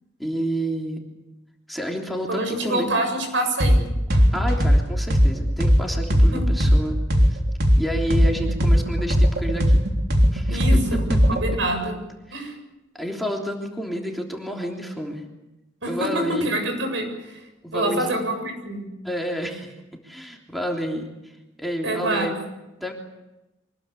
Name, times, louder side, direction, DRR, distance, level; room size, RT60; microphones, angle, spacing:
voice 1, 0.2-1.0 1.7-2.9 4.3-7.0 7.3-7.4 7.8-9.8 10.3-10.8 11.1-11.2 12.3-12.4 13.0-15.2 15.9-16.5 17.6-18.2 19.0-19.7 20.0-21.1 21.6-22.3 22.8-22.9, equal, ahead, 0 dB, 3.3 m, -29 dB
voice 2, 2.3-3.8 6.2-6.4 10.5-11.0 11.3-12.0 12.3-12.5 15.8-15.9 16.4-17.4 17.7-18.9 21.8-22.3, right 1 dB, 75° right, 5 dB, 7.6 m, -26 dB
sound 1, 3.6-3.8 4.1-7.8 8.1-11.5, equal, 60° right, 3.6 m, -17 dB
25.0 x 20.5 x 8.6 m, 0.98 s
head